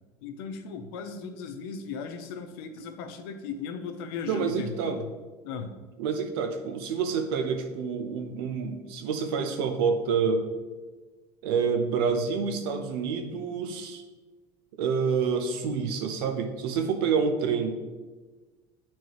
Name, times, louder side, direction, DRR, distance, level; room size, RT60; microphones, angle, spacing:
voice 1, 0.2-5.1 5.4-5.7, left 6 dB, 85° left, 7 dB, 0.7 m, -37 dB
voice 2, 4.3-5.0 6.0-10.4 11.4-14.0 14.8-17.8, right 5 dB, 85° right, 6 dB, 0.8 m, -28 dB
9.2 x 4.5 x 3.1 m, 1.3 s
supercardioid pair, 120°, 12 cm